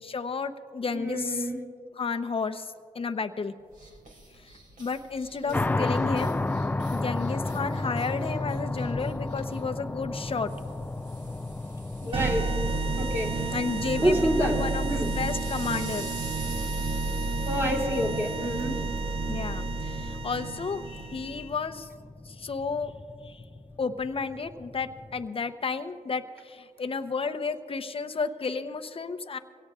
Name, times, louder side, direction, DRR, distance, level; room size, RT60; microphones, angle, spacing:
voice 1, 0.0-1.4 2.0-2.7 2.9-3.5 4.8-6.4 6.9-10.5 13.5-16.1 19.3-21.9 22.3-22.9 23.2-23.4 23.8-29.4, left 4 dB, 40° left, 8 dB, 0.8 m, -32 dB
voice 2, 0.9-1.6 5.4-5.9 12.0-12.5 13.0-13.4 14.0-15.2 17.4-18.9, equal, 15° right, -1 dB, 3.3 m, -28 dB
sound 1, 3.7-19.2, right 2 dB, 60° right, 2.8 m, -47 dB
sound 2, 5.5-25.3, left 2 dB, 10° left, 0.4 m, -34 dB
sound 3, 12.1-21.5, right 3 dB, 35° right, 0.9 m, -31 dB
24.0 x 17.5 x 2.5 m, 2.1 s
cardioid pair, 70°, 15 cm